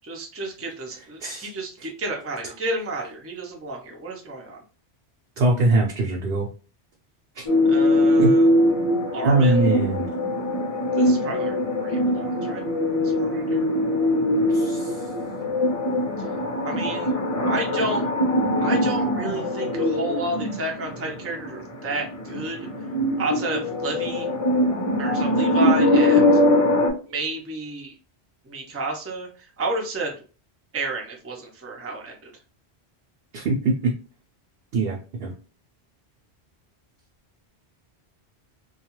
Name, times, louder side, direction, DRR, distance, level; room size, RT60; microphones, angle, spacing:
voice 1, 0.1-4.6 7.6-8.5 9.1-9.6 11.0-12.7 13.0-13.7 16.6-17.1 17.5-18.0 18.6-22.6 23.2-24.3 25.0-26.3 27.1-27.9 28.5-29.3 29.6-30.2 30.7-32.3, right 2 dB, 20° right, 0 dB, 0.4 m, -31 dB
voice 2, 5.4-6.5 7.4-7.5 8.2-8.3 9.2-10.1 14.5-15.1 33.3-33.9 34.7-35.3, right 2 dB, 65° right, -1 dB, 0.7 m, -22 dB
sound 1, 7.5-26.9, left 1 dB, 40° left, 0.6 m, -22 dB
2.3 x 2.3 x 2.9 m, 0.35 s
omnidirectional pair, 1.1 m